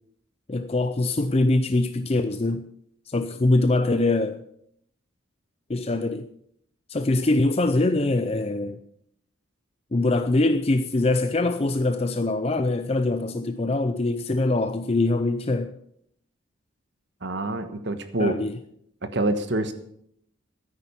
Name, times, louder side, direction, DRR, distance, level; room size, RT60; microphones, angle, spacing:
voice 1, 0.5-2.7 3.1-4.4 5.7-6.3 6.9-8.8 9.9-15.7 18.2-18.5, left 2 dB, 30° left, 0.5 m, -23 dB
voice 2, 17.2-18.4 19.0-19.7, right 2 dB, 55° right, 1.3 m, -26 dB
13.5 x 10.0 x 5.7 m
head